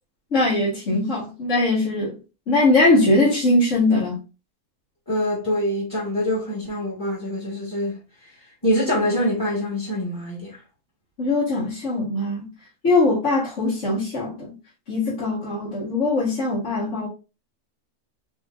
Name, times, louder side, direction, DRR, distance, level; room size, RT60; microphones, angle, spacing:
voice 1, 0.3-2.2 2.5-4.1 11.2-12.5 12.8-14.5 14.9-17.1, left 2 dB, 55° left, 2.1 m, -21 dB
voice 2, 5.1-7.9 8.6-10.6, equal, 15° left, 1.8 m, -24 dB
5.1 x 3.7 x 2.6 m
omnidirectional pair, 1.6 m